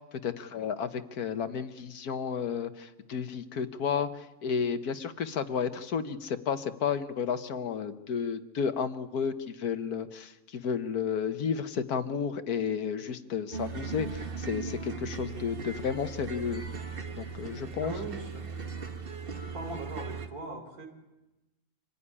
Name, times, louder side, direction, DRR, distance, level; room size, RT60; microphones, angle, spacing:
voice 1, 0.2-16.6 17.2-17.9, left 7 dB, 70° left, 10 dB, 1.6 m, -32 dB
sound 1, 13.5-20.3, right 5 dB, 40° right, 1.4 m, -38 dB
voice 2, 17.8-18.5 19.5-20.9, right 2 dB, 70° right, 5 dB, 4.1 m, -40 dB
26.0 x 15.0 x 9.9 m, 1.0 s
omnidirectional pair, 1.7 m